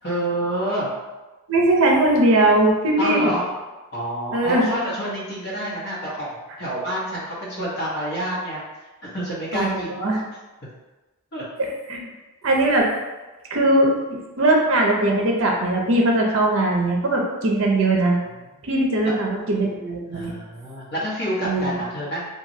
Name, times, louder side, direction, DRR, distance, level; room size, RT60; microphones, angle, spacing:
voice 1, 0.0-0.9 3.0-3.5 3.9-8.6 9.0-10.0 11.3-11.4 19.0-19.1 20.1-22.3, equal, 50° left, -7 dB, 0.9 m, -28 dB
voice 2, 1.5-3.3 4.3-4.7 9.5-10.2 11.6-12.1 12.4-12.9 13.5-18.2 18.6-20.3 21.4-21.8, right 1 dB, 60° right, -1 dB, 0.6 m, -20 dB
2.9 x 2.3 x 2.6 m, 1.2 s
head